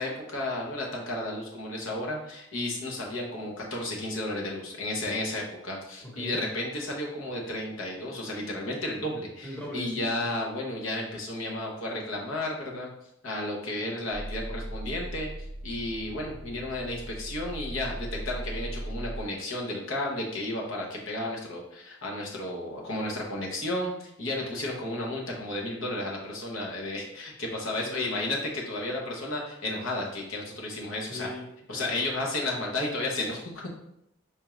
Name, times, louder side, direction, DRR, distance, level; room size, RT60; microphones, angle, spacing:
voice 1, 0.0-12.9 13.2-15.3 15.6-31.3 31.7-33.7, left 1 dB, 75° left, -1 dB, 0.9 m, -33 dB
voice 2, 6.0-6.4 9.4-10.1 27.8-28.1 31.0-32.1, left 1 dB, 5° left, -4 dB, 0.9 m, -40 dB
sound 1, 14.1-19.3, right 1 dB, 50° right, 0.6 m, -38 dB
4.4 x 2.4 x 3.1 m, 0.79 s
head